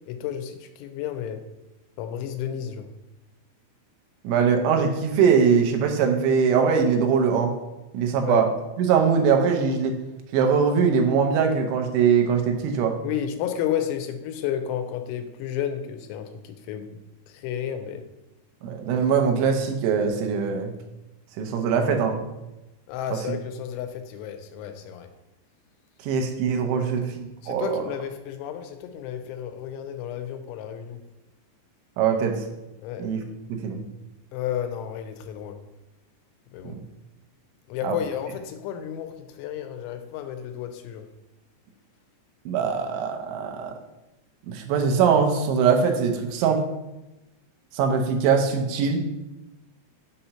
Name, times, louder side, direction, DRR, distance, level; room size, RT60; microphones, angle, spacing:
voice 1, 0.1-1.4 2.0-2.9 8.1-8.4 13.0-17.0 17.3-18.1 22.9-25.1 26.7-26.9 27.4-31.0 32.8-33.1 34.3-35.6 36.5-36.8 37.7-41.1, left 9 dB, 90° left, 7 dB, 3.1 m, -32 dB
voice 2, 4.2-7.5 7.9-8.5 8.8-10.0 10.3-13.0 18.6-20.7 21.4-22.2 23.1-23.4 26.0-27.8 32.0-32.4 33.0-33.2 33.5-33.8 36.6-36.8 37.8-38.0 42.5-43.7 44.5-46.7 47.7-49.0, right 6 dB, 90° right, 3 dB, 3.2 m, -22 dB
7.5 x 2.9 x 5.5 m, 0.97 s
omnidirectional pair, 5.3 m